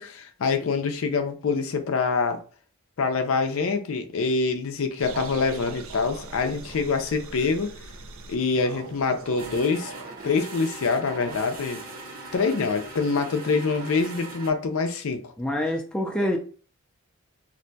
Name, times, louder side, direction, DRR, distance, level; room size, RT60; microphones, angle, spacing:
voice 1, 0.0-2.4 3.0-7.7 8.3-9.9 10.2-11.8 12.3-15.3, left 4 dB, 75° left, 0.5 m, -25 dB
sound 1, 5.0-12.9, right 3 dB, 75° right, 0.5 m, -42 dB
sound 2, 9.4-14.5, right 2 dB, 45° right, 0.8 m, -40 dB
voice 2, 15.4-16.4, left 1 dB, 5° left, 0.4 m, -26 dB
2.6 x 2.2 x 3.9 m
head